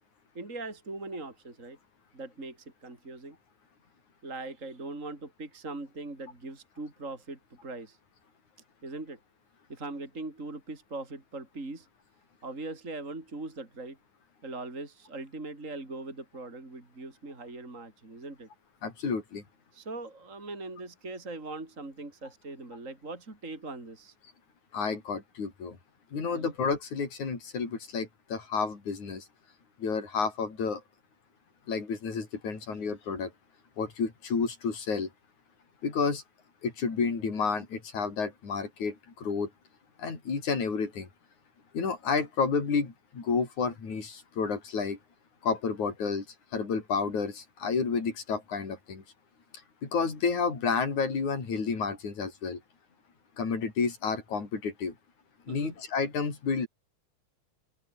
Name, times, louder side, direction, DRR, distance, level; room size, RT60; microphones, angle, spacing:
voice 1, 0.3-1.8 2.1-3.4 4.2-8.0 8.8-9.2 9.7-11.9 12.4-14.0 14.4-18.5 19.7-24.1 26.3-26.5 55.5-55.8, right 2 dB, 25° right, 4.7 m, -41 dB
voice 2, 18.8-19.4 24.7-25.8 26.1-29.3 29.8-30.8 31.7-33.3 33.8-35.1 35.8-36.2 36.6-39.5 40.0-41.1 41.7-45.0 45.4-46.2 46.5-49.0 49.8-52.6 53.4-54.9 55.5-56.7, left 5 dB, 75° left, 6.4 m, -30 dB
open air
omnidirectional pair, 3.4 m